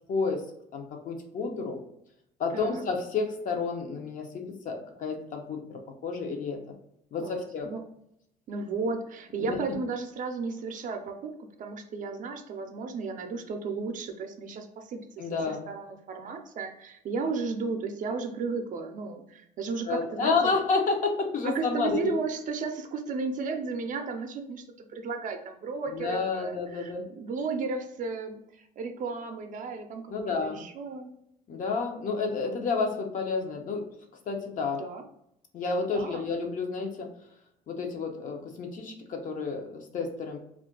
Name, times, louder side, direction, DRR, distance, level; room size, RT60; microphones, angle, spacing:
voice 1, 0.1-0.4 0.7-1.8 2.4-6.7 7.1-7.7 9.4-9.6 15.2-15.6 19.9-22.2 25.9-27.0 30.1-30.6 31.5-33.8 34.3-34.8 35.5-37.1 37.7-40.4, left 4 dB, 50° left, 3 dB, 0.6 m, -30 dB
voice 2, 2.5-2.8 7.2-7.8 8.5-11.3 11.6-20.3 21.4-31.1 34.8-35.0 35.9-36.3, right 4 dB, 50° right, 5 dB, 0.5 m, -34 dB
2.4 x 2.2 x 3.7 m, 0.77 s
cardioid pair, 110°, 17 cm